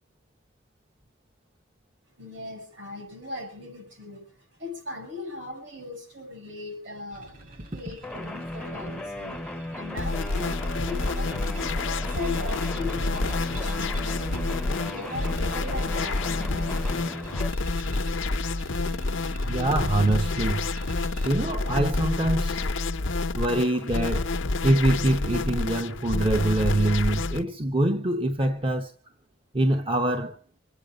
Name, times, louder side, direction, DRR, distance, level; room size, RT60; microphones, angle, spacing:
voice 1, 2.2-9.4 9.7-14.5 14.8-16.9, left 2 dB, 65° right, 7.0 m, -39 dB
sound 1, 7.1-21.3, right 3 dB, 50° right, 2.5 m, -47 dB
sound 2, 8.0-17.5, left 1 dB, 5° left, 0.7 m, -36 dB
sound 3, 10.0-27.4, left 3 dB, 85° left, 0.8 m, -28 dB
voice 2, 19.4-20.7 21.2-22.7 23.4-24.3 24.6-28.9 29.5-30.4, right 1 dB, 30° right, 0.8 m, -24 dB
26.0 x 9.2 x 5.1 m
head